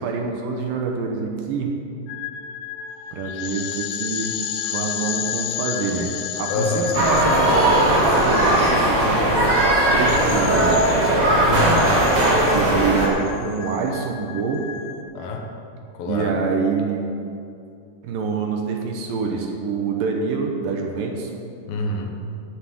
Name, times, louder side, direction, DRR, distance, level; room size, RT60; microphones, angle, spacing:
voice 1, 0.0-1.7 3.1-4.3 4.6-6.1 6.4-10.8 12.5-14.6 16.0-17.1 18.0-21.3, right 5 dB, 70° right, 1 dB, 2.5 m, -26 dB
sound 1, 2.1-15.0, left 10 dB, 90° left, 1.9 m, -32 dB
voice 2, 6.5-7.0 11.5-11.9 15.1-15.5 16.0-16.4 21.7-22.1, left 3 dB, 75° left, 2 dB, 2.7 m, -26 dB
sound 2, 6.9-13.1, right 1 dB, 40° right, 1.8 m, -18 dB
9.3 x 7.3 x 8.3 m, 2.5 s
omnidirectional pair, 4.5 m